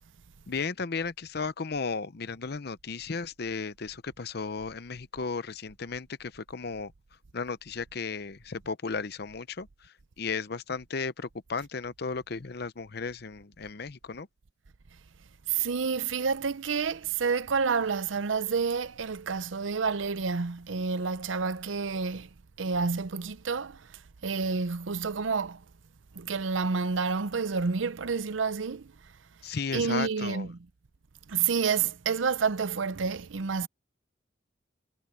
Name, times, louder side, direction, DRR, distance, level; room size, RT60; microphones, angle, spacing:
voice 1, 0.5-6.9 7.3-9.7 10.2-14.3 29.4-30.5, left 4 dB, 55° left, 0.7 m, -34 dB
voice 2, 15.5-22.3 22.6-25.6 26.2-28.9 29.7-30.7 31.3-33.7, right 5 dB, 85° right, 0.7 m, -29 dB
head